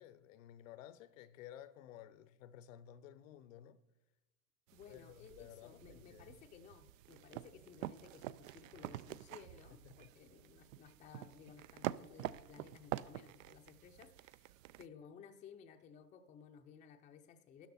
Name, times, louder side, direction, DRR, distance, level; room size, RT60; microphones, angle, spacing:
voice 1, 0.0-3.8 4.9-6.3 9.8-10.1, left 11 dB, 55° left, 0.8 m, -55 dB
voice 2, 4.7-14.5 14.8-17.7, left 7 dB, 15° left, 0.6 m, -57 dB
sound 1, 4.7-14.9, right 15 dB, 60° right, 0.5 m, -47 dB
13.0 x 10.0 x 4.2 m
hypercardioid pair, 125°, 46 cm